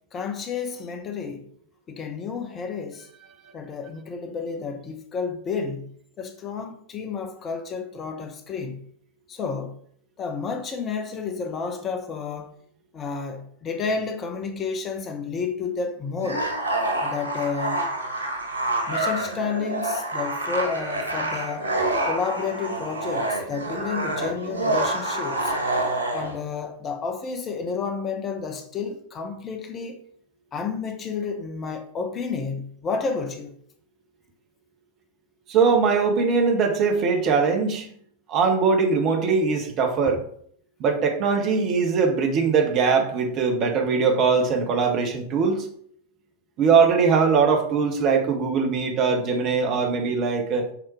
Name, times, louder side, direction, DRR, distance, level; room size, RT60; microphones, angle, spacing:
voice 1, 0.1-1.5 1.9-3.1 3.5-5.9 6.2-8.8 9.3-9.8 10.2-12.5 12.9-16.5 17.0-17.9 18.9-21.8 22.0-25.6 26.1-30.1 30.5-33.6, left 5 dB, 25° left, 0.9 m, -31 dB
sound 1, 16.2-26.3, right 2 dB, 90° left, 1.6 m, -27 dB
voice 2, 35.5-37.9 38.3-40.2 40.8-45.7 46.6-50.7, right 5 dB, 35° right, 1.5 m, -21 dB
7.1 x 4.3 x 4.8 m
figure-of-eight pair, 90°, 0 cm